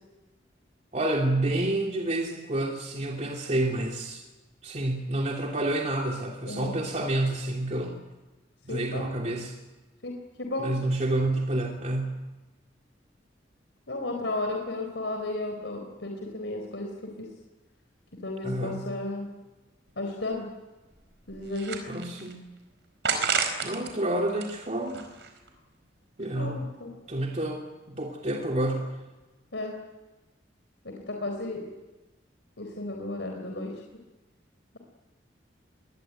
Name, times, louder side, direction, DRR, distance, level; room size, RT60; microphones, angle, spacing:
voice 1, 0.9-4.2 4.6-8.0 8.6-9.5 10.6-12.2 18.4-18.9 21.9-22.4 23.6-25.1 26.2-26.7 27.1-28.9, right 1 dB, 40° right, 0 dB, 3.0 m, -29 dB
voice 2, 8.7-9.1 10.0-10.8 13.9-17.3 18.2-19.3 20.0-20.5 21.3-21.9 26.3-26.9 29.5-29.8 30.8-31.7 32.6-33.8, left 2 dB, 85° left, 2 dB, 4.2 m, -33 dB
sound 1, 19.9-20.0 20.3-20.4 21.0-22.3 23.0-23.9 24.3-25.5, right 5 dB, 75° right, 4.8 m, -30 dB
24.5 x 20.5 x 9.1 m, 1.1 s
head